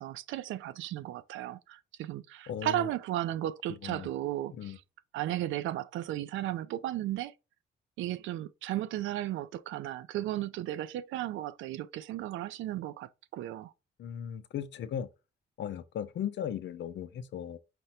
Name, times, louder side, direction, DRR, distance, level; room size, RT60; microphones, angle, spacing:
voice 1, 0.0-4.8 5.1-7.3 8.0-13.7, right 13 dB, 80° right, 0.4 m, -35 dB
voice 2, 2.5-2.9 3.8-4.1 4.6-4.8 14.0-15.1 15.6-17.6, left 9 dB, 65° left, 0.6 m, -37 dB
5.1 x 2.1 x 4.2 m
cardioid pair, 90°, 20 cm